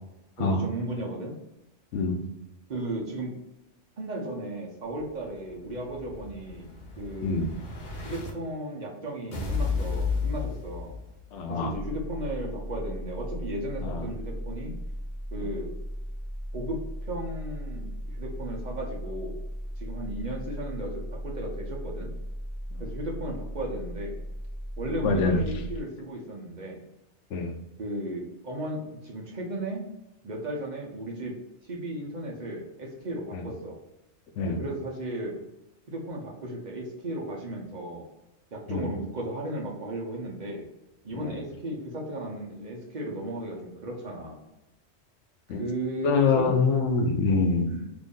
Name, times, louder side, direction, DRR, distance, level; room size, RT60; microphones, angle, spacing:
voice 1, 0.4-1.3 2.7-3.4 4.0-6.7 7.0-7.5 8.0-10.9 11.5-14.8 15.3-15.8 16.5-19.3 19.8-22.1 22.8-24.1 24.8-26.8 27.8-29.8 30.2-31.3 31.6-33.8 34.4-35.3 35.9-38.0 38.5-40.6 41.0-44.4 45.6-46.6 47.7-47.9, right 1 dB, 45° right, -2 dB, 0.7 m, -35 dB
Explosion, 5.0-8.3 9.3-11.3, left 4 dB, 65° left, 1.0 m, -33 dB
voice 2, 11.3-11.7 13.8-14.1 15.4-15.5 22.7-22.8 25.0-25.4 27.3-27.5 33.3-33.4 34.4-34.6 38.7-38.9 41.1-41.4 45.5-45.7 46.0-47.7, left 4 dB, 90° left, 5 dB, 0.9 m, -25 dB
sound 1, 11.7-25.8, equal, ahead, 1.0 m, -37 dB
3.0 x 2.6 x 3.7 m, 0.93 s
omnidirectional pair, 1.2 m